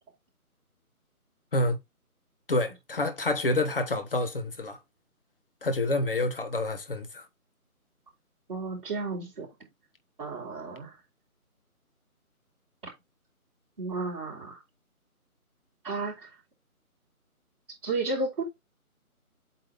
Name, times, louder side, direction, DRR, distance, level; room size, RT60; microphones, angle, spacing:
voice 1, 2.5-4.8 5.6-7.3, left 2 dB, 40° left, 1.2 m, -28 dB
voice 2, 8.5-9.5 10.2-11.0 12.8-12.9 13.8-14.6 15.8-16.4 17.8-18.4, right 3 dB, 35° right, 3.5 m, -33 dB
8.1 x 3.0 x 4.9 m
figure-of-eight pair, 165°, 45 cm